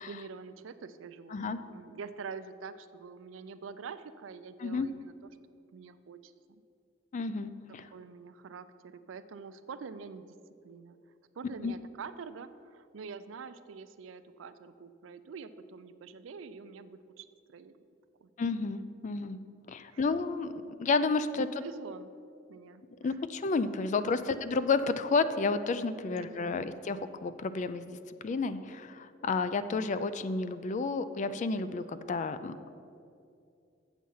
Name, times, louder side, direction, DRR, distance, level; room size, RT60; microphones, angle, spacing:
voice 1, 0.0-5.3 5.7-6.3 7.9-10.3 10.6-11.0 11.3-17.7 18.2-18.3 19.9-20.0 21.3-22.1 22.5-23.2 24.3-24.4 26.1-26.7, right 5 dB, 75° right, 12 dB, 0.4 m, -46 dB
voice 2, 7.1-7.9 11.6-11.7 18.4-19.4 19.7-20.5 20.8-21.5 23.0-28.0 28.2-32.5, left 4 dB, 40° left, 12 dB, 0.3 m, -31 dB
7.5 x 7.1 x 5.5 m, 2.5 s
head